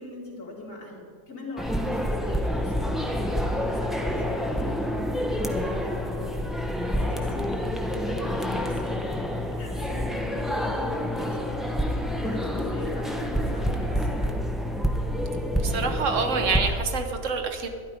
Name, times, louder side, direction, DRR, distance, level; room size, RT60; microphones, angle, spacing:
voice 1, 0.0-6.4 6.7-11.6 11.8-14.4, left 2 dB, 70° left, -5 dB, 2.9 m, -40 dB
sound 1, 1.6-16.6, equal, ahead, 0.5 m, -28 dB
voice 2, 15.6-17.7, right 4 dB, 65° right, 5 dB, 1.3 m, -26 dB
12.5 x 11.5 x 5.1 m, 2.4 s
omnidirectional pair, 1.4 m